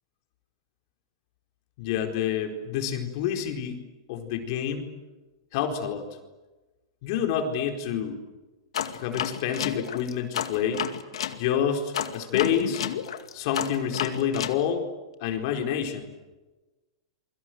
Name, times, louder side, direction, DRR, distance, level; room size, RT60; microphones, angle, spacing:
voice 1, 1.8-3.8 4.1-4.9 5.5-6.1 7.0-8.2 8.9-10.8 11.4-12.8 13.3-14.8 15.2-16.1, left 8 dB, 55° left, 4 dB, 4.4 m, -28 dB
sound 1, 8.7-11.4 11.9-14.6, left 9 dB, 80° left, 2.2 m, -31 dB
29.0 x 24.0 x 7.9 m, 1.2 s
hypercardioid pair, 130°, 3 cm